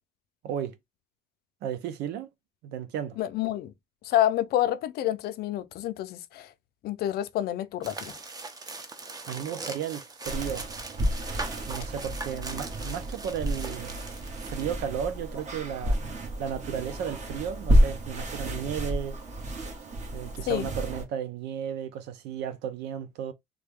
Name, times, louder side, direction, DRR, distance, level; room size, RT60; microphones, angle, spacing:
voice 1, 0.4-0.8 1.6-2.3 2.6-3.2 9.3-10.7 11.7-14.0 14.4-16.0 16.4-19.2 20.1-23.3, right 8 dB, 85° right, 0.7 m, -34 dB
voice 2, 3.2-3.7 4.0-6.5 6.8-8.2 20.5-20.7, left 12 dB, 70° left, 0.5 m, -28 dB
sound 1, 7.8-14.7, right 3 dB, 20° right, 0.7 m, -40 dB
sound 2, 10.2-21.0, equal, 45° right, 1.5 m, -30 dB
3.5 x 2.3 x 3.4 m
cardioid pair, 110°, 17 cm